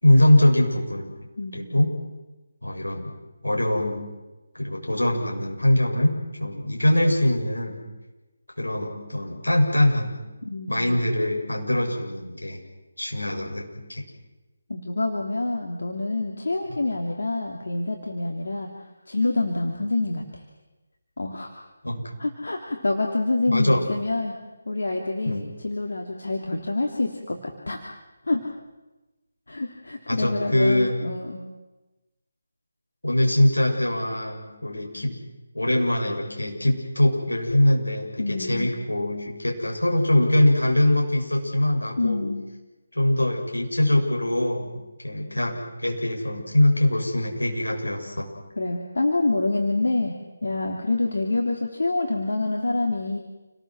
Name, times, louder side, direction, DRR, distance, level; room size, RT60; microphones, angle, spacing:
voice 1, 0.0-1.1 1.5-1.9 2.6-3.1 3.4-4.0 4.5-7.8 8.6-10.1 10.7-12.6 13.0-14.0 21.8-22.1 23.5-23.9 25.3-25.5 30.1-31.0 33.0-35.2 35.5-42.2 42.9-48.3, left 1 dB, 85° left, 1 dB, 7.0 m, -22 dB
voice 2, 1.4-1.9 10.4-11.0 14.7-18.7 19.1-20.4 21.2-21.5 22.2-24.4 24.7-27.8 28.2-28.4 29.5-31.4 38.2-38.7 42.0-42.4 48.6-50.1 50.4-53.2, left 2 dB, 70° left, 1 dB, 3.3 m, -27 dB
29.0 x 19.5 x 7.6 m, 1.1 s
figure-of-eight pair, 155°, 0 cm